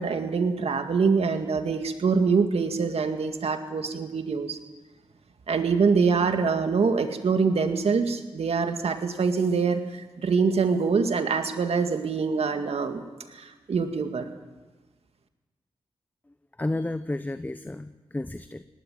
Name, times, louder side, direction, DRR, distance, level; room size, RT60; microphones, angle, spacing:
voice 1, 0.0-4.6 5.5-13.0 13.3-14.3, right 5 dB, 65° right, 7 dB, 2.0 m, -24 dB
voice 2, 16.6-18.6, left 2 dB, 15° left, 11 dB, 0.8 m, -31 dB
19.0 x 16.5 x 9.2 m, 1.2 s
cardioid pair, 55°, 11 cm